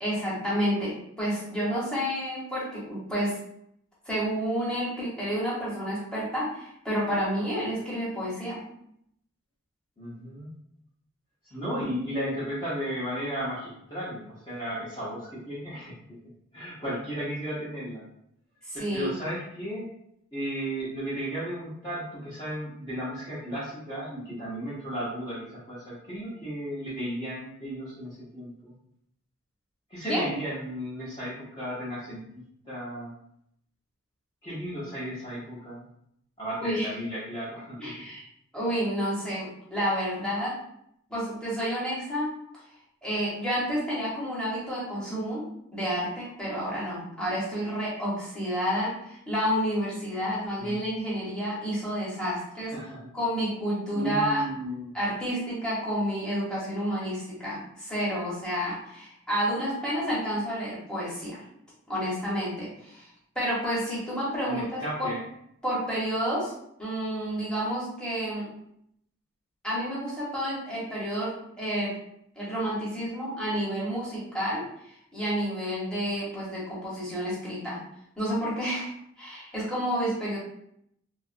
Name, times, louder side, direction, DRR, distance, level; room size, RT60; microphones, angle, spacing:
voice 1, 0.0-3.4 4.0-8.6 18.7-19.1 30.1-30.3 36.6-36.9 37.8-38.2 38.5-40.5 41.1-42.3 43.0-45.4 45.7-52.7 53.1-54.4 54.9-61.4 61.9-63.1 63.3-65.1 65.6-66.5 66.8-68.5 69.6-72.0 72.4-77.8 78.2-78.9 79.2-80.4, equal, 5° left, -8 dB, 1.0 m, -30 dB
voice 2, 10.0-10.5 11.5-15.9 16.5-18.0 18.7-19.9 20.3-28.7 29.9-33.1 34.4-35.9 36.4-37.9 50.6-50.9 52.6-53.0 53.9-55.0 64.5-65.2, equal, 20° left, -10 dB, 0.7 m, -34 dB
2.7 x 2.4 x 2.4 m, 0.73 s
head